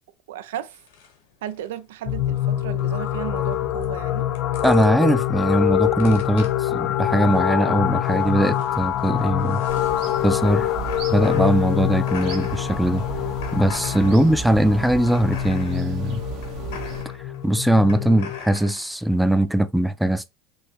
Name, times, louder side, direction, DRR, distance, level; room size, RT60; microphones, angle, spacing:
voice 1, 0.3-0.8 1.4-4.3 14.1-14.2, right 11 dB, 85° right, 0.4 m, -34 dB
sound 1, 0.7-19.4, left 6 dB, 90° left, 1.4 m, -44 dB
sound 2, 2.1-18.4, left 12 dB, 55° left, 0.5 m, -25 dB
voice 2, 4.6-9.6 10.2-10.7 11.1-13.1 13.5-16.2 17.4-20.3, right 1 dB, 5° right, 0.5 m, -20 dB
sound 3, 9.7-17.0, right 6 dB, 65° right, 1.1 m, -36 dB
5.3 x 2.8 x 3.0 m
supercardioid pair, 100°, 0 cm